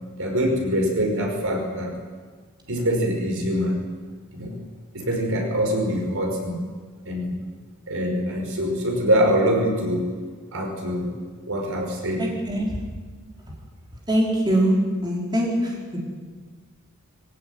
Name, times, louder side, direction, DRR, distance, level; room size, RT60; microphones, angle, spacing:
voice 1, 0.2-2.0 2.7-3.8 4.3-4.5 4.9-6.6 7.0-7.4 7.9-10.1 10.5-11.1 11.4-12.2, equal, 65° right, 2 dB, 5.7 m, -24 dB
voice 2, 12.2-12.8 14.1-14.8 15.0-16.0, right 1 dB, 20° right, -3 dB, 4.8 m, -23 dB
23.0 x 16.0 x 9.6 m, 1.5 s
head